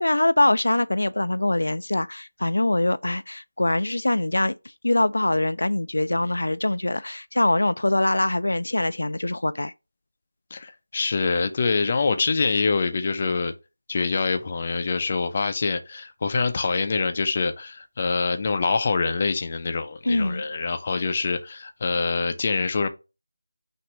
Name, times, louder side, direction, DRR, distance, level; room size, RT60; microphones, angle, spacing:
voice 1, 0.0-4.5 4.8-9.7 20.0-20.4, left 1 dB, 85° left, 0.4 m, -23 dB
voice 2, 10.5-13.5 13.9-22.9, left 4 dB, 25° left, 0.5 m, -25 dB
5.8 x 2.6 x 3.1 m
figure-of-eight pair, 175°, 0 cm